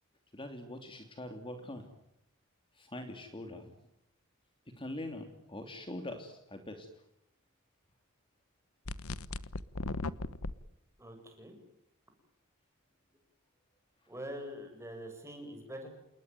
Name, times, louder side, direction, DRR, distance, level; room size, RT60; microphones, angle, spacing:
voice 1, 0.3-1.8 2.9-3.6 4.8-6.9, left 1 dB, 25° left, 6 dB, 3.0 m, -43 dB
sound 1, 8.9-10.5, left 2 dB, 75° left, 1.2 m, -37 dB
voice 2, 11.0-11.6 14.1-15.9, equal, 15° right, 4 dB, 7.8 m, -44 dB
28.5 x 21.0 x 9.3 m, 0.81 s
head